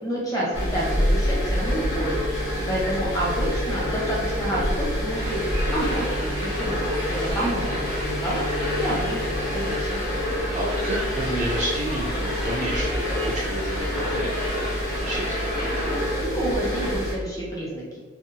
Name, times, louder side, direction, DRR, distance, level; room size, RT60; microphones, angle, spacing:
voice 1, 0.0-2.2 2.7-5.4 5.7-6.8 7.2-8.4 8.7-10.1 16.2-18.0, right 1 dB, 20° left, -5 dB, 0.8 m, -29 dB
sound 1, 0.5-17.1, equal, 75° left, 0.9 m, -27 dB
voice 2, 2.5-2.9 10.5-14.3 14.5-15.4, right 1 dB, 40° right, -3 dB, 0.3 m, -30 dB
sound 2, 5.1-16.0, left 1 dB, 55° left, 1.1 m, -34 dB
2.7 x 2.3 x 2.6 m, 1.3 s
head